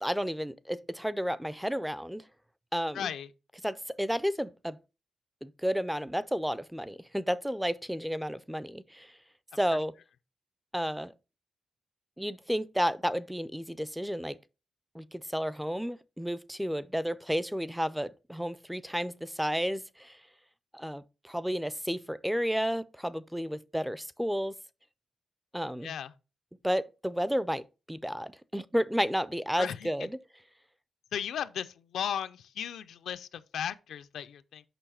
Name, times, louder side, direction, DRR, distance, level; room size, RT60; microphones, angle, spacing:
voice 1, 0.0-2.3 2.7-3.1 3.6-4.8 5.4-9.1 9.6-9.9 10.7-11.1 12.2-14.4 14.9-20.2 20.7-24.6 25.5-25.9 26.6-27.6 27.9-30.2, equal, ahead, 0.3 m, -32 dB
voice 2, 2.9-3.3 25.8-26.1 29.6-29.9 31.1-31.7 31.9-34.6, left 9 dB, 90° left, 0.5 m, -35 dB
6.9 x 5.6 x 4.2 m
wide cardioid pair, 165°, 0 cm